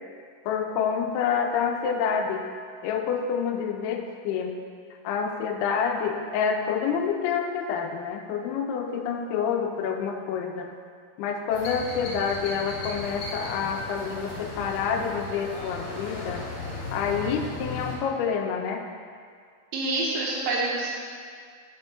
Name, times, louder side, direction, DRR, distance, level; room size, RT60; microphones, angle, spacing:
voice 1, 0.5-2.5 2.8-4.6 5.0-10.7 11.2-16.4 16.9-18.8, left 6 dB, 85° left, 4 dB, 2.5 m, -28 dB
sound 1, 11.5-18.0, left 2 dB, 60° left, 2.0 m, -36 dB
voice 2, 19.7-20.9, right 2 dB, 70° right, -4 dB, 2.6 m, -27 dB
5.7 x 5.3 x 5.7 m, 2.2 s
omnidirectional pair, 4.5 m